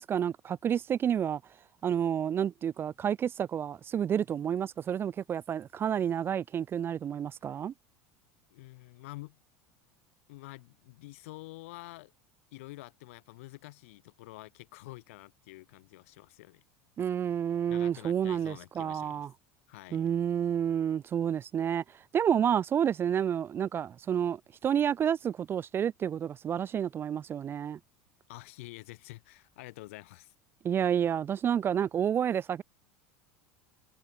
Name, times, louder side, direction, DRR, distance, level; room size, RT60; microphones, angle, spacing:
voice 1, 0.0-1.4 1.8-7.7 17.0-19.3 19.9-21.8 22.1-27.8 30.6-32.6, right 9 dB, 30° right, 0.4 m, -29 dB
voice 2, 8.5-9.4 10.3-12.1 12.5-16.6 17.7-19.3 19.7-20.0 28.3-30.3, left 20 dB, 70° left, 2.4 m, -48 dB
hypercardioid pair, 80°, 8 cm